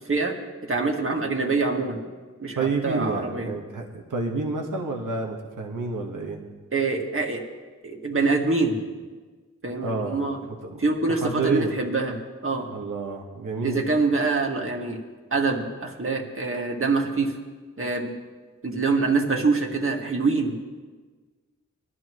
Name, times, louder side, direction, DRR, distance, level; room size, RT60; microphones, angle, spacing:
voice 1, 0.7-2.0 2.4-3.5 6.7-7.4 7.8-8.7 9.6-10.4 10.8-12.2 12.4-12.7 13.6-15.0 15.3-17.3 17.8-18.1 18.6-20.8, right 3 dB, 45° right, 1 dB, 2.0 m, -25 dB
voice 2, 2.5-6.4 9.8-10.8 11.1-11.7 12.7-13.9, right 4 dB, 80° right, 1 dB, 1.5 m, -29 dB
21.0 x 12.5 x 3.1 m, 1.4 s
wide cardioid pair, 80°, 31 cm